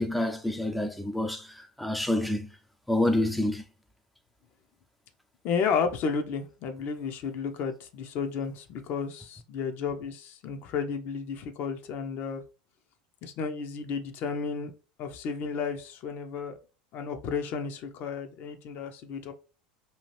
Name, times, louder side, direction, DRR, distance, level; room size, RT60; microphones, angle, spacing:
voice 1, 0.0-2.5 2.9-3.6, left 1 dB, ahead, 0.4 m, -28 dB
voice 2, 5.4-12.4 13.2-14.7 15.0-16.5 16.9-19.3, left 6 dB, 50° left, 0.5 m, -32 dB
2.8 x 2.4 x 3.0 m
hypercardioid pair, 80°, 4 cm